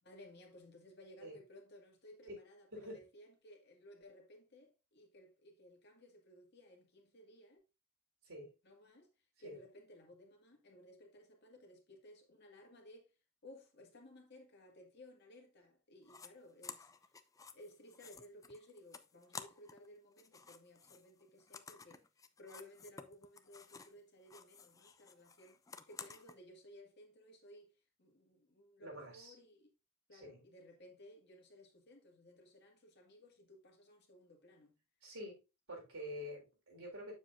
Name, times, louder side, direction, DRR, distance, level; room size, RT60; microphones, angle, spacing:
voice 1, 0.0-7.6 8.6-9.1 9.4-13.1 13.4-16.9 17.5-22.1 22.4-25.6 25.9-27.7 28.0-29.7 30.1-34.8, left 1 dB, 50° left, 1.9 m, -58 dB
sound 1, 16.1-16.3 16.6-19.9 20.1-24.0 24.3-26.4, left 5 dB, 15° left, 0.4 m, -53 dB
voice 2, 28.8-29.3 30.1-30.4 35.0-35.4 35.7-37.1, equal, 80° right, 4.1 m, -47 dB
7.5 x 7.1 x 2.5 m
head